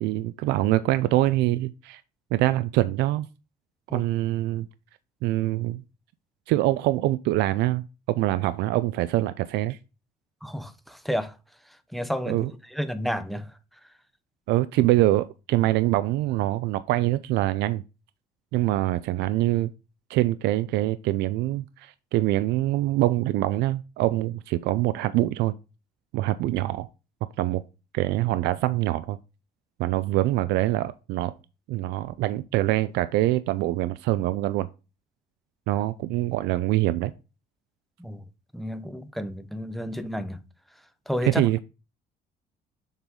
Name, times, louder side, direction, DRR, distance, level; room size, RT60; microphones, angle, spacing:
voice 1, 0.0-2.0 2.3-3.3 3.9-4.7 5.2-5.8 6.5-9.8 12.3-12.5 14.5-17.8 18.5-19.7 20.1-25.5 26.1-26.9 27.4-27.6 27.9-29.2 29.8-31.3 31.7-34.7 35.7-37.1 41.2-41.6, right 16 dB, 85° right, 0.4 m, -24 dB
voice 2, 10.4-11.4 11.9-13.6 38.0-38.2 38.5-40.4 41.1-41.6, equal, ahead, 0.6 m, -31 dB
7.1 x 3.9 x 3.8 m
cardioid pair, 110°, 17 cm